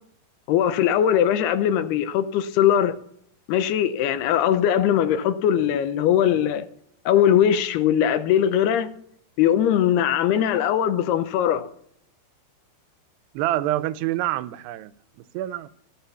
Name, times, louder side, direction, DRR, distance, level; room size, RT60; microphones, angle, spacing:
voice 1, 0.5-3.0 3.5-6.7 7.1-8.9 9.4-11.7, left 10 dB, 80° left, 2.8 m, -20 dB
voice 2, 13.3-14.9 15.3-15.7, right 14 dB, 85° right, 2.7 m, -26 dB
15.0 x 9.8 x 7.0 m
omnidirectional pair, 4.7 m